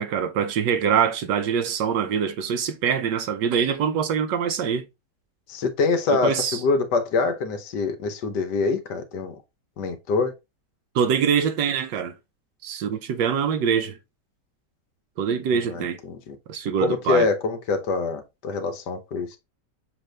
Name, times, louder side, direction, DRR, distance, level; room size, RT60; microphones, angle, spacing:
voice 1, 0.0-4.9 6.1-6.6 10.9-12.1 12.6-14.0 15.2-16.0 16.5-17.3, right 7 dB, 85° right, 1.4 m, -24 dB
voice 2, 5.5-9.4 9.8-10.3 15.5-16.4 16.8-19.4, left 4 dB, 75° left, 1.5 m, -25 dB
6.4 x 2.6 x 3.1 m
omnidirectional pair, 1.8 m